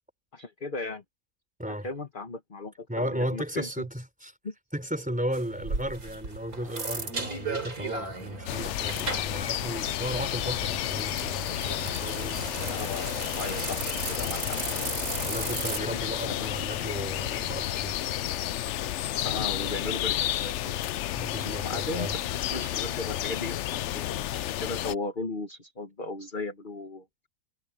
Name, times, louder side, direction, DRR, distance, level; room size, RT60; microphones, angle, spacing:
voice 1, 0.3-1.0 1.7-3.8 4.4-4.5 12.7-13.8 14.1-14.6 15.9-16.0 16.3-16.5 19.2-21.1 21.4-27.0, left 3 dB, 35° left, 1.7 m, -36 dB
voice 2, 1.6-1.9 2.9-4.3 4.7-12.9 15.2-18.0 21.2-22.2, equal, 5° right, 4.0 m, -35 dB
sound 1, 5.3-15.8, right 3 dB, 75° right, 4.0 m, -36 dB
sound 2, 8.5-25.0, left 13 dB, 65° left, 0.7 m, -31 dB
omnidirectional pair, 1.6 m